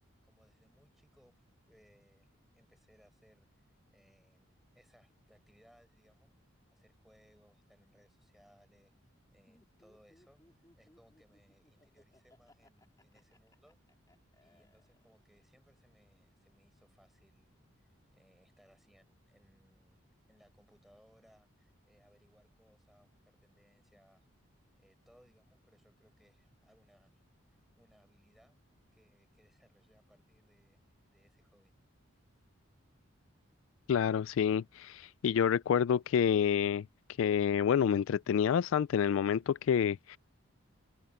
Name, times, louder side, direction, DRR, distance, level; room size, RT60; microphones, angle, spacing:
voice 1, 0.2-2.3 2.5-3.5 3.9-8.9 9.3-13.8 14.4-20.0 20.3-24.2 24.8-27.1 27.7-28.6 28.9-30.8 31.1-31.7, equal, ahead, 7.7 m, -67 dB
Laughter, 9.5-15.4, left 1 dB, 15° left, 3.2 m, -66 dB
voice 2, 33.9-36.8 37.2-40.2, left 8 dB, 70° left, 0.3 m, -28 dB
open air
head